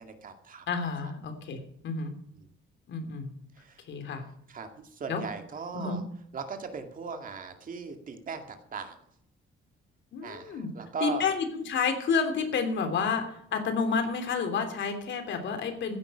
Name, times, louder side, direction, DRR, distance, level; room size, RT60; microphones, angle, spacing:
voice 1, 0.0-0.7 1.0-1.1 2.4-2.5 3.6-3.8 4.5-6.0 6.3-9.0 10.2-11.3, right 4 dB, 40° right, 6 dB, 2.2 m, -38 dB
voice 2, 0.7-2.1 2.9-3.3 3.9-4.2 5.1-5.2 5.7-6.0 10.1-10.7 11.0-16.0, left 5 dB, 65° left, 6 dB, 3.2 m, -30 dB
15.0 x 11.0 x 5.7 m, 0.69 s
cardioid pair, 160°, 20 cm